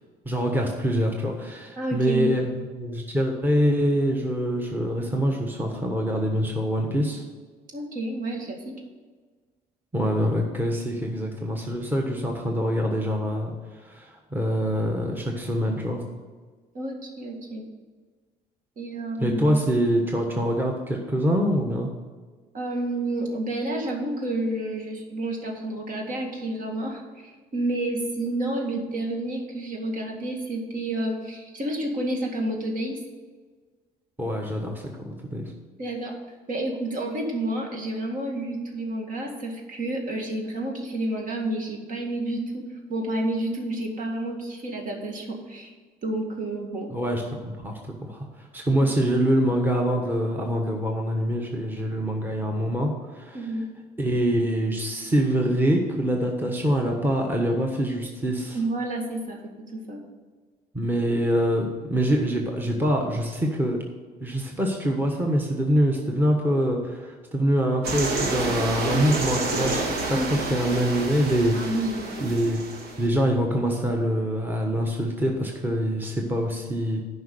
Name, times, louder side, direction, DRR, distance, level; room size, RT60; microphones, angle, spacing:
voice 1, 0.2-7.2 9.9-16.0 19.2-21.9 34.2-35.5 46.9-53.5 54.0-58.6 60.7-63.8 64.2-71.6 72.2-72.6 73.0-77.0, equal, 10° right, 1 dB, 1.3 m, -25 dB
voice 2, 1.8-2.3 7.7-8.8 16.7-17.6 18.8-19.7 22.5-33.0 35.8-36.1 36.5-45.7 46.0-46.9 48.8-48.9 53.3-53.6 58.5-59.4 59.7-60.0 70.1-70.5 71.5-72.0, right 1 dB, 50° right, 1 dB, 2.1 m, -30 dB
sound 1, 67.8-73.1, right 3 dB, 70° right, 1.6 m, -29 dB
9.3 x 5.5 x 6.6 m, 1.4 s
cardioid pair, 110°, 17 cm